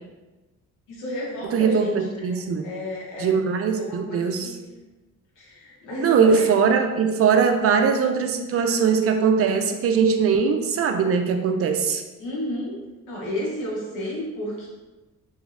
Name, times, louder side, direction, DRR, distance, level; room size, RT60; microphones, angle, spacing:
voice 1, 0.9-1.9 2.3-3.4 3.8-4.6 5.4-6.5 12.2-12.8 13.1-14.7, equal, 85° left, -4 dB, 1.1 m, -32 dB
voice 2, 1.4-2.7 3.2-4.6 6.0-12.0, right 6 dB, 50° right, 5 dB, 0.4 m, -21 dB
3.0 x 2.7 x 2.5 m, 1.1 s
cardioid pair, 90°, 30 cm